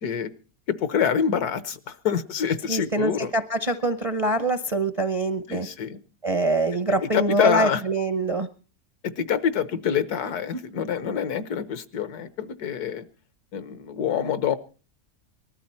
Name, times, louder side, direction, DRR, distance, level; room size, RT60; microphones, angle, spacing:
voice 1, 0.7-3.3 5.5-6.0 7.0-7.8 9.0-13.0 13.5-14.6, left 8 dB, 75° left, 13 dB, 1.5 m, -26 dB
voice 2, 2.7-5.7 6.2-8.5, right 2 dB, 35° right, 10 dB, 0.5 m, -24 dB
19.5 x 13.0 x 4.3 m, 0.37 s
omnidirectional pair, 1.7 m